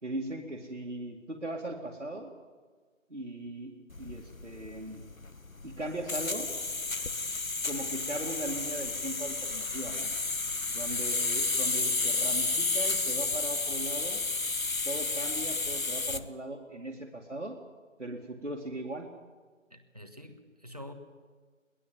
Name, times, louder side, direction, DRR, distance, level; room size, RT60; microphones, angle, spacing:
voice 1, 0.0-2.3 3.1-5.0 5.6-6.5 7.6-10.1 10.7-14.2 14.9-17.6 18.0-19.1, right 1 dB, 65° right, 0 dB, 2.3 m, -39 dB
sound 1, 3.9-16.3, left 3 dB, 85° left, 1.2 m, -31 dB
voice 2, 19.7-20.9, left 1 dB, 30° right, 6 dB, 1.3 m, -47 dB
22.0 x 19.0 x 7.4 m, 1.5 s
figure-of-eight pair, 175°, 40 cm